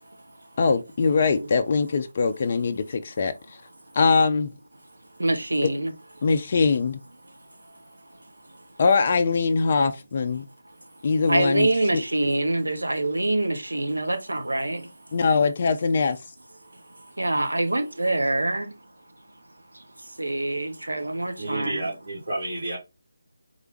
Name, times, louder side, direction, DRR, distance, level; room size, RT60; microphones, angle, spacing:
voice 1, 0.6-3.6 3.9-4.5 5.6-5.7 6.2-7.0 8.8-10.5 11.0-11.7 11.9-12.0 15.1-16.2, left 4 dB, 35° left, 0.4 m, -22 dB
voice 2, 5.2-5.9 11.3-14.9 17.0-18.7 19.7-21.8, right 2 dB, 70° right, 0.9 m, -25 dB
voice 3, 21.4-22.8, right 2 dB, 50° right, 2.2 m, -30 dB
3.9 x 3.3 x 3.0 m
figure-of-eight pair, 155°, 0 cm